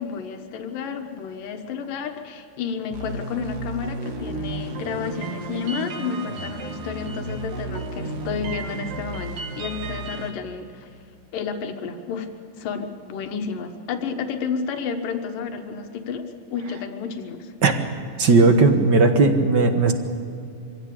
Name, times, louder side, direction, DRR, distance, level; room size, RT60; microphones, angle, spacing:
voice 1, 0.0-10.9 11.3-12.3 12.6-16.2 16.5-17.5, left 6 dB, 90° left, 5 dB, 3.0 m, -31 dB
sound 1, 2.9-10.3, right 3 dB, 75° right, 3.5 m, -33 dB
voice 2, 18.2-19.9, right 3 dB, 50° right, 6 dB, 1.4 m, -16 dB
24.5 x 16.5 x 8.6 m, 2.5 s
omnidirectional pair, 3.7 m